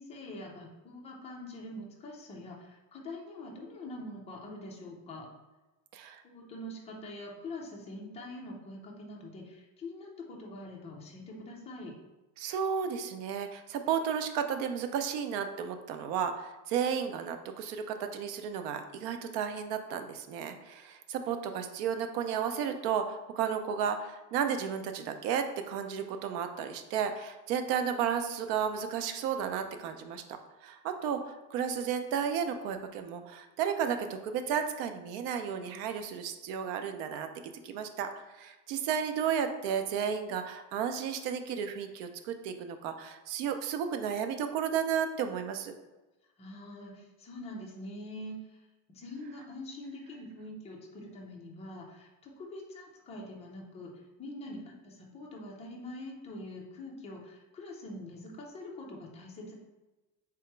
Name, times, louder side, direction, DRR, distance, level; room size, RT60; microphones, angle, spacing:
voice 1, 0.0-5.3 6.2-11.9 46.4-48.6 48.9-53.9 54.2-59.6, left 1 dB, 15° left, -2 dB, 0.3 m, -44 dB
voice 2, 12.4-30.2 30.6-38.1 38.4-45.7, right 7 dB, 85° right, 7 dB, 0.7 m, -33 dB
3.5 x 2.9 x 4.5 m, 1.1 s
cardioid pair, 175°, 44 cm